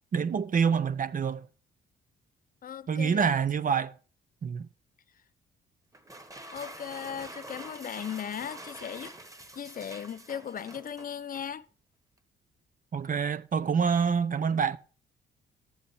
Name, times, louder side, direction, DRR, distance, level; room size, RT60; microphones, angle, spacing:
voice 1, 0.1-1.4 2.9-3.9 4.4-4.7 12.9-14.8, right 6 dB, 45° right, 0.8 m, -26 dB
voice 2, 2.6-3.3 6.5-9.1 9.6-11.7, left 8 dB, 45° left, 0.7 m, -37 dB
sound 1, 5.9-11.5, right 1 dB, 15° right, 1.4 m, -46 dB
12.0 x 7.2 x 5.6 m
cardioid pair, 90°, 20 cm